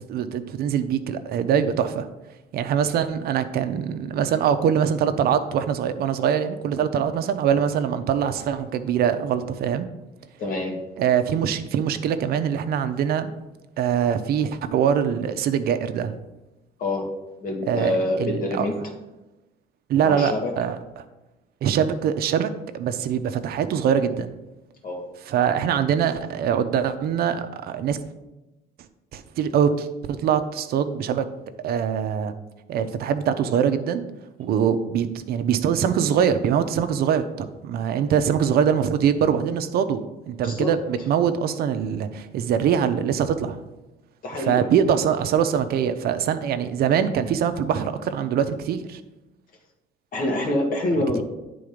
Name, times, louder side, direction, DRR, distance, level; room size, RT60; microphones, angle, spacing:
voice 1, 0.0-2.1 2.5-9.9 11.0-13.3 13.8-16.1 17.6-18.7 19.9-20.8 21.6-24.3 25.3-28.0 29.1-31.3 31.6-32.3 32.7-34.0 34.4-43.6 44.3-49.0, right 8 dB, 65° right, 9 dB, 0.6 m, -23 dB
voice 2, 10.4-10.8 16.8-17.1 17.4-18.7 20.0-20.5 24.8-25.0 40.4-40.7 44.2-44.6 50.1-51.2, left 1 dB, 55° left, 1 dB, 1.7 m, -26 dB
9.4 x 3.9 x 5.0 m, 1.0 s
cardioid pair, 110°, 17 cm